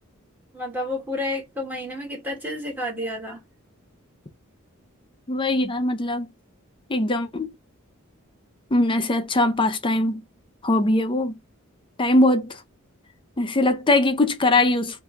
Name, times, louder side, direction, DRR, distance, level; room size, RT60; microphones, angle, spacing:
voice 1, 0.5-3.4, left 1 dB, 10° right, 1.7 m, -30 dB
voice 2, 5.3-6.3 6.9-7.5 8.7-10.2 10.6-11.4 12.0-12.6 13.4-15.0, left 2 dB, 25° left, 0.6 m, -21 dB
3.5 x 2.7 x 3.6 m
head